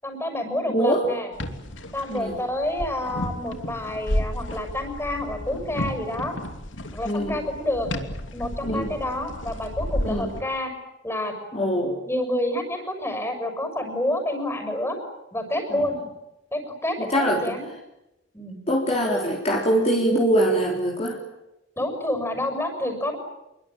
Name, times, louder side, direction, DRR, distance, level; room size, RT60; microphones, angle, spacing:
voice 1, 0.0-1.3 1.9-6.4 6.9-7.9 8.3-10.7 11.0-11.7 12.0-15.0 15.3-16.0 16.5-17.6 18.3-18.6 21.8-23.2, left 1 dB, 15° left, 6 dB, 6.8 m, -28 dB
voice 2, 0.7-1.0 2.1-2.4 7.0-7.4 8.6-8.9 10.0-10.3 11.5-11.9 15.7-15.8 17.0-17.4 18.7-21.2, right 1 dB, 35° left, -1 dB, 4.0 m, -23 dB
sound 1, 1.3-10.4, left 1 dB, 85° left, 3.0 m, -32 dB
27.5 x 23.5 x 9.1 m, 0.93 s
head